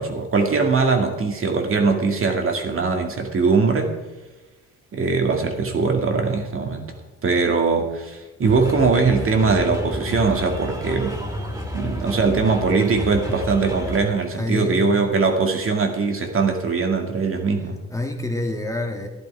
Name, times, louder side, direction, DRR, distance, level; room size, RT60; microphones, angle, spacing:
voice 1, 0.0-4.0 4.9-6.9 7.2-11.2 11.7-17.8, right 4 dB, 45° right, 3 dB, 2.1 m, -21 dB
sound 1, 8.4-14.0, equal, 10° right, 3.0 m, -30 dB
voice 2, 14.4-15.0 17.9-19.1, left 1 dB, 10° left, 2 dB, 1.7 m, -27 dB
12.5 x 11.0 x 4.8 m, 1.1 s
cardioid pair, 90°, 30 cm